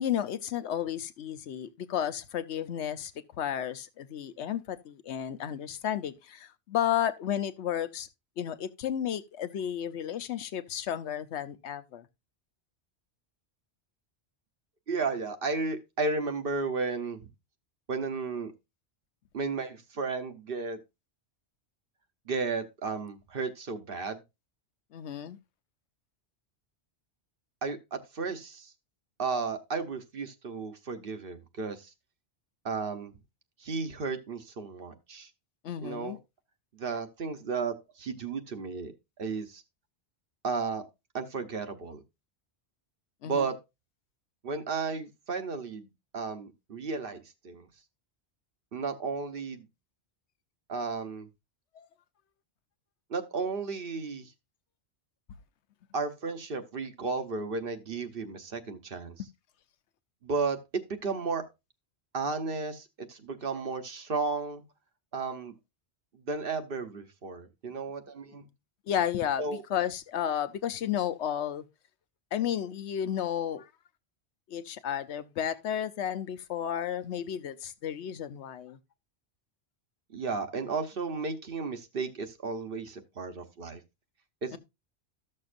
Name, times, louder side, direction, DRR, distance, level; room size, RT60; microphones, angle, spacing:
voice 1, 0.0-3.1 3.4-8.1 8.4-12.1 24.9-25.4 35.6-36.2 43.2-43.5 51.7-51.9 59.2-59.3 68.9-71.6 72.3-73.7 74.5-78.8 84.5-84.6, left 10 dB, 85° left, 1.0 m, -32 dB
voice 2, 14.9-17.2 17.9-18.5 19.3-20.8 22.3-24.2 27.6-28.7 29.2-31.9 32.6-33.1 33.6-35.3 35.8-36.2 36.7-38.9 39.2-39.6 40.4-40.8 41.1-42.0 43.2-43.5 44.4-45.9 46.1-47.7 48.7-49.7 50.7-51.3 53.1-54.3 55.9-59.2 60.2-61.4 62.1-64.6 65.1-65.5 66.1-68.5 69.4-69.6 80.1-83.8 84.4-84.6, right 4 dB, 55° right, 1.1 m, -33 dB
13.5 x 6.6 x 2.5 m
omnidirectional pair, 1.1 m